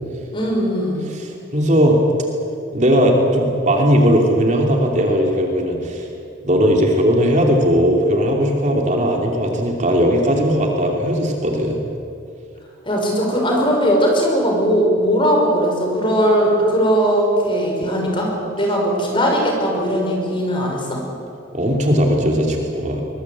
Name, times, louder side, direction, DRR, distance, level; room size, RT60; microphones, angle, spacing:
voice 1, 0.3-1.1 12.9-21.0, equal, 25° left, 0 dB, 5.6 m, -19 dB
voice 2, 1.5-2.0 2.7-6.1 6.4-11.8 21.5-23.0, equal, 40° right, 1 dB, 2.9 m, -17 dB
23.5 x 21.5 x 8.5 m, 2.6 s
head